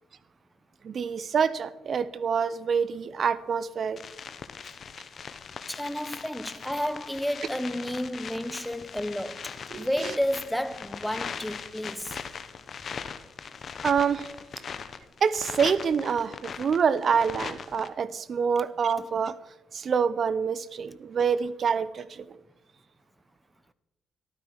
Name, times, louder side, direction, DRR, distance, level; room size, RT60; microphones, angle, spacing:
voice 1, 0.8-4.0 9.7-10.1 13.8-14.3 15.2-19.4 19.7-22.4, right 6 dB, 50° right, 0.7 m, -26 dB
sound 1, 4.0-17.9, left 6 dB, 50° left, 0.9 m, -40 dB
voice 2, 5.7-12.2, equal, 5° left, 0.8 m, -31 dB
14.0 x 12.0 x 4.7 m
cardioid pair, 90°, 0 cm